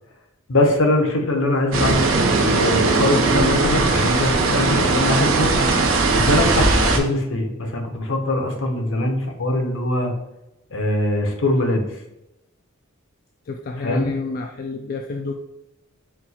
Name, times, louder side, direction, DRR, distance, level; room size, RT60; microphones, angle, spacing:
voice 1, 0.5-2.0 2.5-5.6 6.1-10.1 10.7-11.9 13.8-14.1, left 1 dB, 65° left, 4 dB, 0.8 m, -22 dB
sound 1, 1.7-7.0, right 3 dB, 70° right, 0.6 m, -19 dB
voice 2, 13.5-15.3, left 4 dB, 45° left, 3 dB, 0.3 m, -29 dB
4.4 x 2.4 x 4.1 m, 0.89 s
head